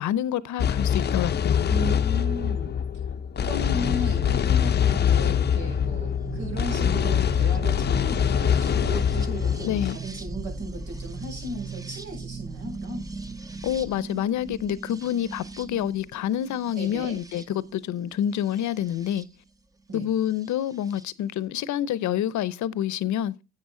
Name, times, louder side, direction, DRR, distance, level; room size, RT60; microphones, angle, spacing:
voice 1, 0.0-1.7 9.6-10.0 13.6-19.3 19.9-23.3, left 11 dB, 70° left, 0.7 m, -27 dB
sound 1, 0.6-9.9, left 8 dB, 35° left, 0.5 m, -24 dB
voice 2, 1.7-2.7 3.4-13.0 16.7-17.1 19.9-20.1, equal, 85° right, 6.1 m, -35 dB
sound 2, 3.5-19.3 20.4-21.0, right 3 dB, 10° right, 0.7 m, -38 dB
10.5 x 7.8 x 3.7 m
cardioid pair, 90°, 30 cm